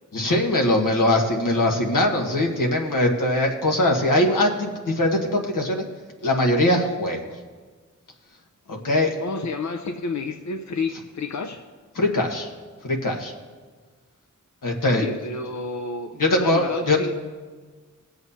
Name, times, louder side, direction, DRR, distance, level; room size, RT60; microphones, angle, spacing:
voice 1, 0.1-5.8 6.2-7.2 8.7-9.1 11.9-12.5 12.8-13.3 14.6-15.1 16.2-17.0, left 1 dB, 90° left, 1 dB, 1.4 m, -21 dB
voice 2, 9.2-11.6 14.9-17.1, left 3 dB, 65° left, 5 dB, 0.6 m, -30 dB
20.5 x 8.0 x 2.7 m, 1.5 s
wide cardioid pair, 70°, 31 cm